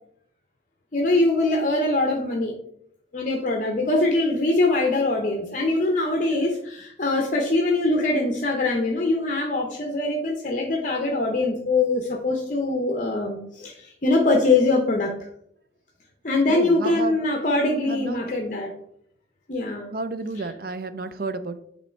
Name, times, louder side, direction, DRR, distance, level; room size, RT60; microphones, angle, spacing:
voice 1, 0.9-2.5 3.1-15.3 16.2-18.7 19.5-19.9 20.4-20.5, left 2 dB, 45° left, 1 dB, 0.7 m, -23 dB
voice 2, 16.5-17.2 17.9-18.2 19.9-21.6, right 3 dB, 50° right, 12 dB, 0.5 m, -31 dB
8.0 x 3.1 x 4.4 m, 0.71 s
head